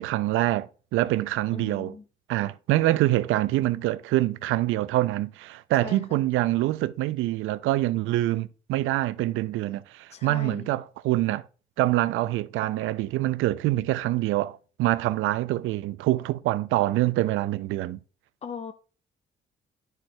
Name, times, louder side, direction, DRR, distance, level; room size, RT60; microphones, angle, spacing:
voice 1, 0.0-2.0 2.3-11.4 11.8-18.0, right 16 dB, 85° right, 0.4 m, -25 dB
voice 2, 1.5-2.0 5.8-6.2 10.1-10.7 18.4-18.7, left 5 dB, 35° left, 0.6 m, -38 dB
9.6 x 6.4 x 2.2 m
cardioid pair, 90°, 20 cm